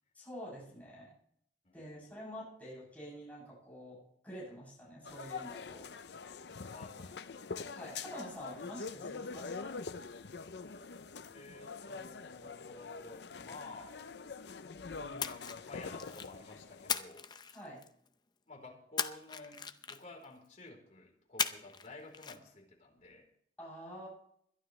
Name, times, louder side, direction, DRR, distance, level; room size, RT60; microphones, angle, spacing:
voice 1, 0.1-1.1 1.7-5.9 7.7-9.8 17.5-17.8 23.6-24.1, equal, 10° left, -7 dB, 7.7 m, -47 dB
voice 2, 1.6-2.0 6.7-7.6 11.3-14.0 14.9-15.4 15.7-17.3 18.5-23.3, left 2 dB, 40° left, 0 dB, 3.9 m, -52 dB
sound 1, 5.0-16.9, left 4 dB, 70° left, 0.6 m, -45 dB
Splash splatter, 15.2-16.4 16.9-18.1 19.0-20.2 21.4-21.9 22.1-22.4, left 6 dB, 25° left, 0.6 m, -37 dB
22.0 x 11.5 x 3.2 m, 0.68 s
head